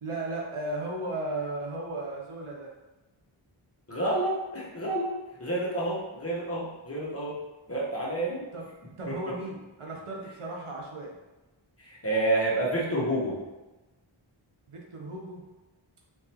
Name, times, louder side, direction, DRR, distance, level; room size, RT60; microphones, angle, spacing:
voice 1, 0.0-2.7 8.5-8.7 9.0-11.2 14.7-15.4, right 2 dB, 85° right, -1 dB, 1.0 m, -35 dB
voice 2, 3.9-5.1 5.4-7.4 7.7-8.5 9.1-9.2 11.8-13.4, right 1 dB, 30° left, -5 dB, 1.2 m, -29 dB
4.4 x 3.8 x 3.0 m, 1.1 s
wide cardioid pair, 70°, 49 cm